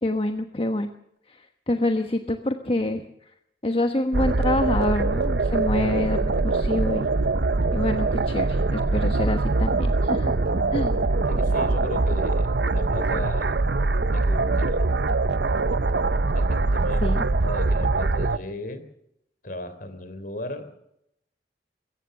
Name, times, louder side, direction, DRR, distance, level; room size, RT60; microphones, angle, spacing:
voice 1, 0.0-0.9 1.3-3.0 3.6-7.1 7.7-10.3 10.7-10.9 17.0-17.3, left 1 dB, 35° left, 7 dB, 1.2 m, -26 dB
sound 1, 4.1-18.4, right 3 dB, 70° right, 0.8 m, -23 dB
voice 2, 11.3-13.6 14.1-14.9 16.3-17.1 17.4-18.8 19.4-20.7, left 1 dB, 50° left, 11 dB, 3.4 m, -36 dB
22.5 x 18.0 x 6.7 m, 0.77 s
head